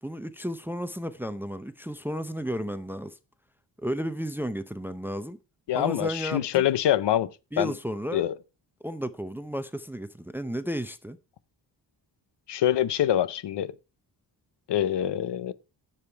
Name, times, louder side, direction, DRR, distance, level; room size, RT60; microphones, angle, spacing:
voice 1, 0.0-3.2 3.8-5.4 5.7-6.7 7.5-8.2 8.8-11.2, equal, 5° right, 0.5 m, -33 dB
voice 2, 5.7-7.3 7.6-7.7 8.1-8.4 12.5-13.7 14.7-15.5, left 11 dB, 70° left, 0.7 m, -25 dB
10.0 x 7.1 x 4.5 m
wide cardioid pair, 150°, 44 cm